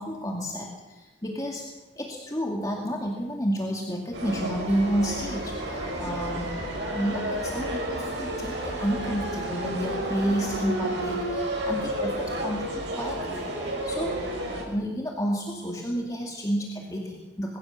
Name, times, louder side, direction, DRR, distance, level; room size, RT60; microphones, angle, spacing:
voice 1, 0.0-1.7 2.0-13.5 13.8-14.2 14.6-17.6, equal, 20° left, 0 dB, 2.2 m, -30 dB
sound 1, 4.1-14.6, right 1 dB, 85° right, 5.9 m, -31 dB
21.5 x 16.5 x 7.5 m, 1.1 s
head